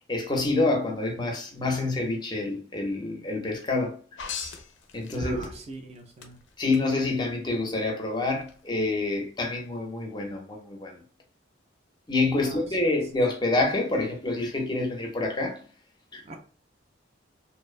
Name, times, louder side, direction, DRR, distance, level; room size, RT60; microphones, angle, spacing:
voice 1, 0.1-4.0 4.9-5.5 6.6-11.0 12.1-15.6 16.1-16.4, left 2 dB, 25° left, 0.5 m, -27 dB
sound 1, 4.2-5.8 6.2-6.8 8.4-8.5, left 4 dB, 75° left, 0.4 m, -36 dB
voice 2, 5.1-6.4 12.3-12.9 16.3-16.4, right 2 dB, 35° right, 0.4 m, -42 dB
2.5 x 2.1 x 2.4 m
head